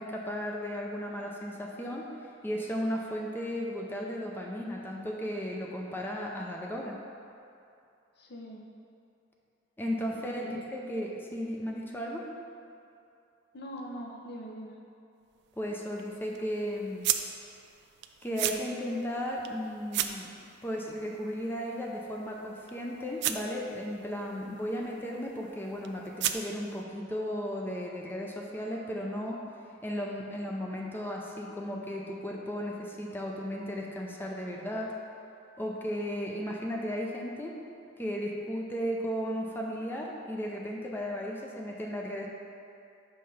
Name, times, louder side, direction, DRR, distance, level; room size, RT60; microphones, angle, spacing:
voice 1, 0.0-2.1 2.4-7.0 9.8-12.3 15.6-17.1 18.2-20.3 20.6-29.4 29.8-34.9 35.6-37.5 38.0-42.3, equal, 10° left, -1 dB, 0.5 m, -35 dB
voice 2, 8.2-8.7 10.1-10.6 13.5-14.8, equal, 55° left, 0 dB, 0.7 m, -42 dB
sound 1, 15.2-26.8, right 11 dB, 60° right, 0.3 m, -38 dB
5.6 x 3.2 x 5.5 m, 2.6 s
head